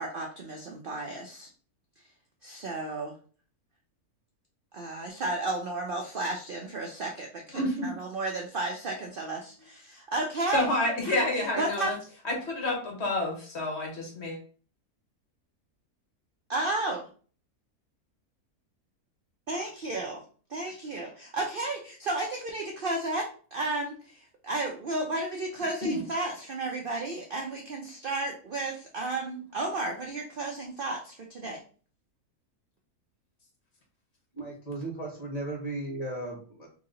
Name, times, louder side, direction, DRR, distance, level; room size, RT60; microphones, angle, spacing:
voice 1, 0.0-1.5 2.4-3.1 4.7-10.7 11.0-11.2 11.6-11.9 16.5-17.1 19.5-20.2 20.5-31.6, right 2 dB, 60° right, 1 dB, 0.5 m, -33 dB
voice 2, 7.5-7.9 10.5-12.0 12.2-14.4 25.8-26.0, left 2 dB, 50° left, 0 dB, 1.2 m, -29 dB
voice 3, 34.3-36.7, right 2 dB, 30° left, -1 dB, 1.2 m, -36 dB
3.0 x 2.8 x 3.8 m, 0.41 s
omnidirectional pair, 1.6 m